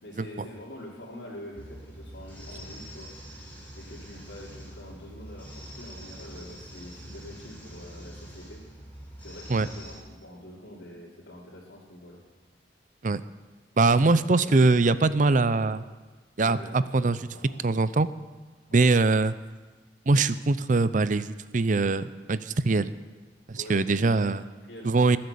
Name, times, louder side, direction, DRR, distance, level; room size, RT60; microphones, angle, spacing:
voice 1, 0.0-3.1 3.8-8.6 9.2-12.2 13.9-15.7 16.4-17.6 18.7-18.9 23.6-25.2, left 1 dB, 90° left, -8 dB, 3.1 m, -45 dB
sound 1, 1.6-10.0, equal, 10° left, 6.7 m, -44 dB
voice 2, 13.8-15.8 16.4-17.2 17.6-18.1 18.7-19.3 20.1-22.9 23.5-24.4 24.8-25.2, right 3 dB, 45° right, 15 dB, 0.6 m, -22 dB
19.5 x 8.7 x 7.0 m, 1.3 s
head